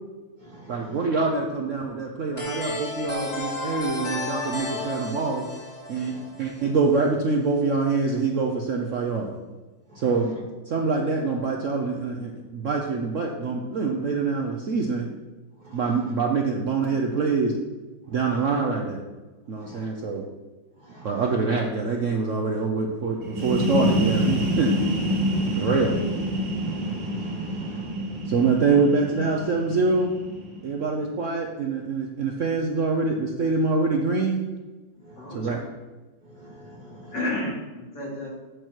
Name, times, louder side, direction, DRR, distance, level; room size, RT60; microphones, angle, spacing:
voice 1, 0.7-5.5 5.9-9.3 10.0-10.3 10.7-15.1 15.7-17.6 18.1-19.0 19.5-20.2 21.0-24.7 25.6-26.0 28.3-30.1 30.6-34.4 35.3-35.6, right 4 dB, 55° right, 0 dB, 0.9 m, -25 dB
sound 1, 2.4-7.0, left 2 dB, 25° left, 1.0 m, -33 dB
sound 2, 23.2-30.8, equal, 80° right, 1.9 m, -27 dB
voice 2, 26.6-27.9 35.0-35.1 36.4-37.1, right 1 dB, 25° right, -3 dB, 1.4 m, -46 dB
voice 3, 35.2-35.6 37.1-38.3, left 1 dB, 70° left, -5 dB, 3.0 m, -31 dB
8.3 x 6.2 x 4.5 m, 1.2 s
omnidirectional pair, 2.0 m